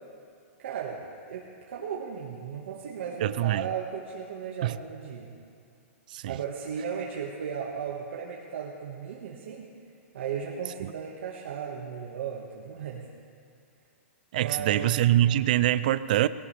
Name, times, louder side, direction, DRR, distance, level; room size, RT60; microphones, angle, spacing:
voice 1, 0.6-1.0 1.3-5.3 6.3-9.7 10.1-13.1 14.4-14.9, right 7 dB, 55° right, -3 dB, 1.7 m, -36 dB
voice 2, 3.2-3.7 4.6-4.8 6.1-6.4 10.8-10.9 14.3-16.3, right 13 dB, 35° right, 15 dB, 0.3 m, -24 dB
21.0 x 18.0 x 3.4 m, 2.3 s
hypercardioid pair, 180°, 8 cm